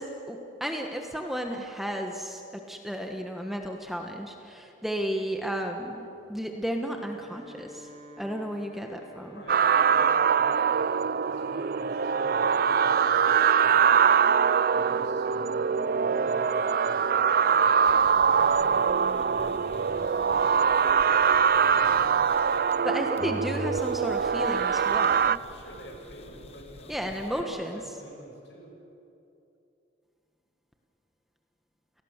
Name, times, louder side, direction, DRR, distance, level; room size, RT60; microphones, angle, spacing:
voice 1, 0.0-2.4 2.7-7.9 8.2-9.4 22.8-25.4 26.9-27.8, equal, ahead, 2 dB, 1.3 m, -33 dB
Wind instrument woodwind instrument, 6.8-10.9, right 1 dB, 30° right, 3.3 m, -49 dB
voice 2, 9.3-14.1 14.7-18.9 19.2-20.6 21.5-22.2 22.7-22.9 25.4-28.7, equal, 65° left, 0 dB, 6.5 m, -48 dB
sound 1, 9.5-25.4, right 6 dB, 50° right, 0.4 m, -23 dB
sound 2, 17.9-22.9 23.2-27.4, left 1 dB, 30° left, 1.1 m, -45 dB
29.5 x 18.5 x 7.3 m, 2.8 s
head